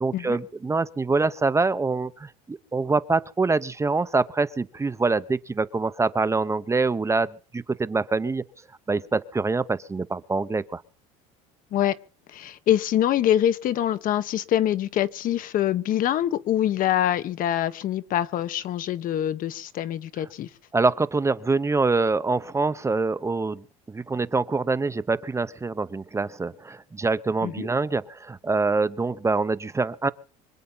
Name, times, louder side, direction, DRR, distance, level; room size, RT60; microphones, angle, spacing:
voice 1, 0.0-8.4 8.9-10.8 20.7-30.1, right 3 dB, 15° right, 0.9 m, -25 dB
voice 2, 12.3-20.5 27.4-27.7, left 11 dB, 55° left, 1.3 m, -24 dB
25.0 x 8.5 x 5.7 m
supercardioid pair, 100°, 17 cm